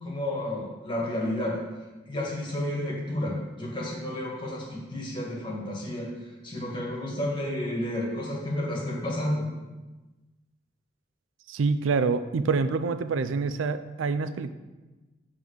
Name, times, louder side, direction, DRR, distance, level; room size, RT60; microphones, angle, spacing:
voice 1, 0.0-1.6 2.1-9.5, left 1 dB, 25° left, -3 dB, 1.8 m, -31 dB
voice 2, 11.5-14.5, right 4 dB, 85° right, 12 dB, 0.4 m, -26 dB
7.6 x 3.7 x 6.4 m, 1.2 s
head